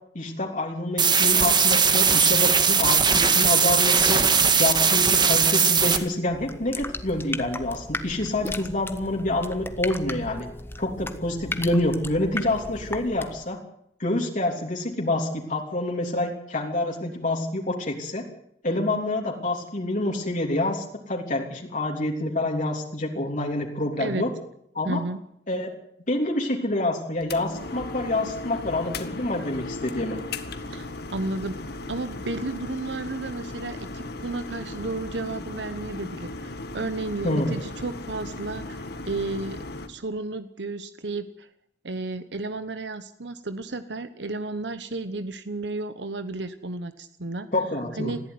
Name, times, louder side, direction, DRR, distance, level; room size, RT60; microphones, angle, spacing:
voice 1, 0.1-4.2 4.6-10.5 10.8-13.6 14.0-18.2 18.6-24.3 24.7-25.0 25.5-25.7 26.1-30.2 37.2-37.6 47.5-48.1, left 2 dB, 45° left, 0 dB, 3.3 m, -27 dB
sound 1, 1.0-6.0, right 6 dB, 25° right, 1.7 m, -19 dB
sound 2, 6.2-13.5, left 2 dB, 15° left, 1.4 m, -36 dB
voice 2, 24.8-25.2 30.7-39.6 39.9-41.5 41.8-47.5 48.0-48.2, right 2 dB, 70° right, 11 dB, 1.1 m, -33 dB
sound 3, 27.2-39.9, left 2 dB, 60° left, 2.0 m, -36 dB
20.5 x 15.0 x 9.6 m, 0.74 s
head